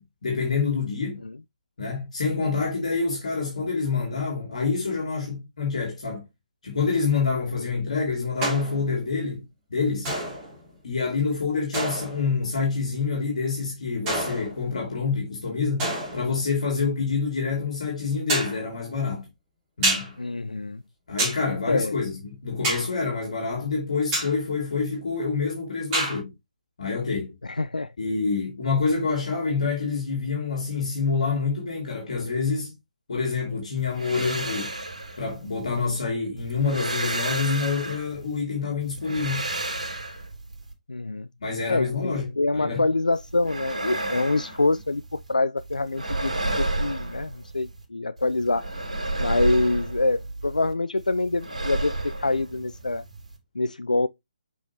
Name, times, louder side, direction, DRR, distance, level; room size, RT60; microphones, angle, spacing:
voice 1, 0.0-1.2 1.8-6.3 6.6-9.4 9.7-10.1 10.8-15.9 16.1-19.3 19.8-20.1 21.1-26.3 26.8-27.3 28.0-32.8 33.1-34.7 35.2-39.5 41.4-42.8, left 4 dB, 60° left, 2.7 m, -27 dB
sound 1, 8.4-8.9 10.0-10.7 11.7-12.3 14.1-14.8 15.8-16.4 18.3-18.6 19.8-20.1 21.2-21.4 22.6-22.9 24.1-24.4 25.9-26.2, right 2 dB, 20° right, 3.2 m, -28 dB
voice 2, 20.2-20.8 21.7-21.9 27.4-27.9 40.9-41.3 41.7-48.7 49.2-53.0 53.6-54.1, left 2 dB, 80° left, 0.4 m, -25 dB
sound 2, 33.8-36.0 36.4-38.4 38.8-40.7 43.1-45.3 45.6-47.8 48.2-50.7 51.0-53.4, right 2 dB, 60° right, 2.8 m, -32 dB
6.2 x 5.3 x 2.9 m
figure-of-eight pair, 140°, 4 cm